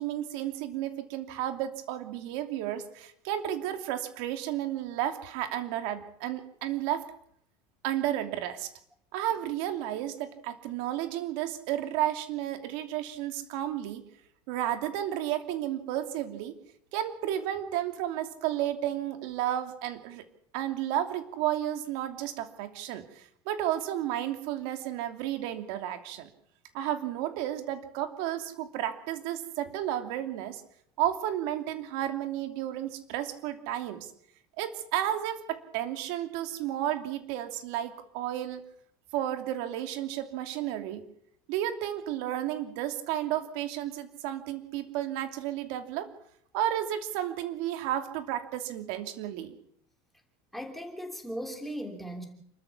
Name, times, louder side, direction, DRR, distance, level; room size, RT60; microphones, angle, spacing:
voice 1, 0.0-7.0 7.8-8.7 9.1-14.0 14.5-16.6 16.9-20.2 20.5-26.3 26.7-30.6 31.0-34.1 34.6-38.6 39.1-41.1 41.5-46.1 46.5-49.6, right 12 dB, 65° right, 2.8 m, -32 dB
voice 2, 50.5-52.3, equal, ahead, 3.0 m, -37 dB
29.0 x 13.5 x 7.1 m
cardioid pair, 175°, 14 cm